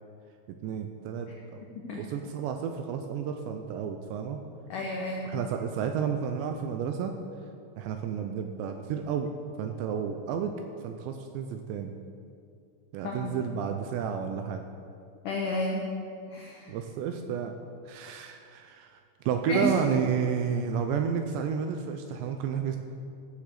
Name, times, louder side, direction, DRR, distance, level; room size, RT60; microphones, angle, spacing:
voice 1, 0.6-1.6 1.9-4.4 5.2-7.2 7.8-9.3 9.6-12.0 12.9-14.6 16.7-17.6 17.9-22.8, right 7 dB, 85° right, 6 dB, 2.7 m, -31 dB
voice 2, 4.7-5.3 13.0-13.3 15.2-15.8 16.3-16.7 19.5-19.7, left 2 dB, 85° left, -1 dB, 1.8 m, -31 dB
15.0 x 6.9 x 6.7 m, 2.4 s
omnidirectional pair, 5.6 m